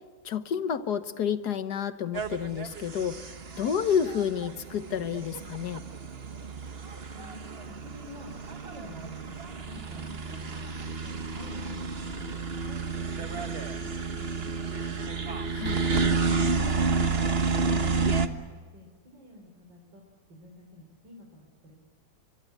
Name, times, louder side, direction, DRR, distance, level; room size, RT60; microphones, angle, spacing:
voice 1, 0.2-5.8 15.5-15.8, left 8 dB, 65° left, 11 dB, 1.6 m, -30 dB
sound 1, 2.1-18.3, right 4 dB, 35° right, 1.4 m, -31 dB
voice 2, 7.7-10.6 11.0-15.1 16.3-20.0 20.3-21.8, left 1 dB, 80° right, 0 dB, 4.8 m, -49 dB
24.5 x 24.0 x 8.4 m, 1.4 s
omnidirectional pair, 2.0 m